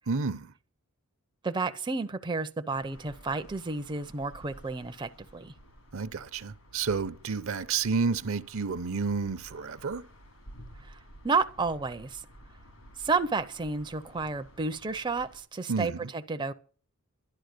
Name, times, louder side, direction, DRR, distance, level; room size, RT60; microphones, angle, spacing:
voice 1, 0.1-0.5 5.9-10.1 15.7-16.1, right 4 dB, 65° right, 0.7 m, -30 dB
voice 2, 1.4-5.5 10.8-11.0 11.2-12.2 13.0-16.5, right 4 dB, 20° right, 0.5 m, -31 dB
sound 1, 2.7-15.4, equal, 85° left, 4.4 m, -53 dB
11.5 x 10.5 x 6.6 m
head